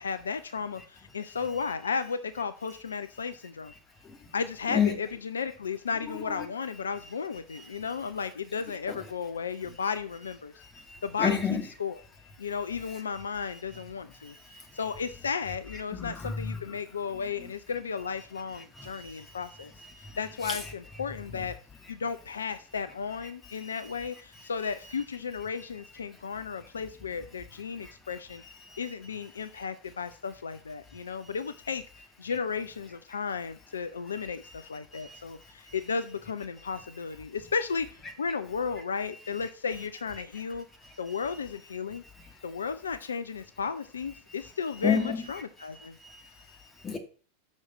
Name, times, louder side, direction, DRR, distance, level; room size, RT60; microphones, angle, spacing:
voice 1, 0.0-3.7 4.3-10.5 11.0-11.4 11.8-12.0 12.4-19.7 20.2-21.5 21.9-28.4 28.8-31.8 32.2-40.7 41.0-42.0 42.4-45.9, left 5 dB, 70° left, 0.5 m, -34 dB
voice 2, 6.1-6.5 7.6-7.7 8.9-9.0 10.6-11.6 14.2-14.6 16.0-16.6 17.4-17.5 18.8-19.2 20.0-20.2 20.4-20.6 27.8-27.9 28.7-28.8 34.9-35.2 44.8-45.2 46.0-46.2 46.6-47.0, left 7 dB, 20° left, 2.1 m, -31 dB
6.4 x 6.3 x 7.2 m
figure-of-eight pair, 90°, 0 cm